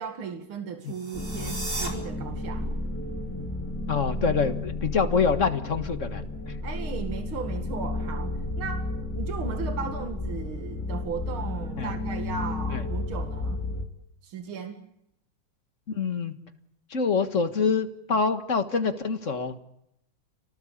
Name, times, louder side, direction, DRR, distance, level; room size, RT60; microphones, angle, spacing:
voice 1, 0.0-2.8 6.6-8.9 9.1-13.6 14.2-14.8, right 6 dB, 80° right, 5 dB, 2.9 m, -36 dB
sound 1, 0.8-1.9, right 2 dB, 55° right, 5.3 m, -35 dB
sound 2, 1.1-13.8, left 2 dB, 5° left, 3.2 m, -32 dB
voice 2, 3.9-6.6 11.8-11.9 12.7-12.8 15.9-16.4 16.9-19.6, left 5 dB, 40° left, 8 dB, 1.8 m, -26 dB
30.0 x 19.0 x 8.5 m, 0.79 s
omnidirectional pair, 2.3 m